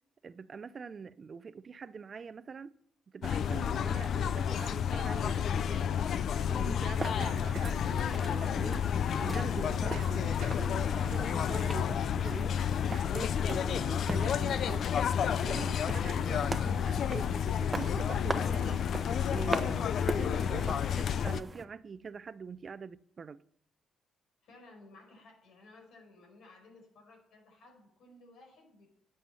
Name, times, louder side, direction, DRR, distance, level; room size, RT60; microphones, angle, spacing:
voice 1, 0.2-2.8 3.1-6.1 6.5-8.9 9.1-12.5 12.9-14.9 15.4-18.8 19.3-23.4, right 5 dB, 45° right, 0.5 m, -44 dB
sound 1, 3.2-21.4, left 8 dB, 65° left, 0.5 m, -30 dB
sound 2, 5.9-11.4, right 8 dB, 75° right, 0.9 m, -50 dB
sound 3, 6.9-21.7, right 3 dB, 20° right, 1.0 m, -42 dB
voice 2, 24.4-28.9, left 2 dB, 80° left, 4.9 m, -56 dB
11.0 x 7.7 x 5.6 m
cardioid pair, 90°, 0 cm